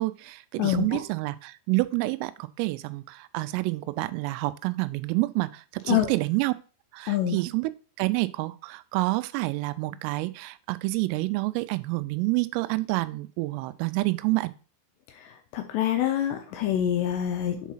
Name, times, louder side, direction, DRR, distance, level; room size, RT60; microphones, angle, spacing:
voice 1, 0.0-6.5 6.9-7.7 8.0-14.5, right 21 dB, 90° right, 3.2 m, -28 dB
voice 2, 0.6-1.0 5.9-6.1 7.1-7.4 15.5-17.7, left 11 dB, 80° left, 2.6 m, -26 dB
7.3 x 4.6 x 5.6 m
omnidirectional pair, 5.8 m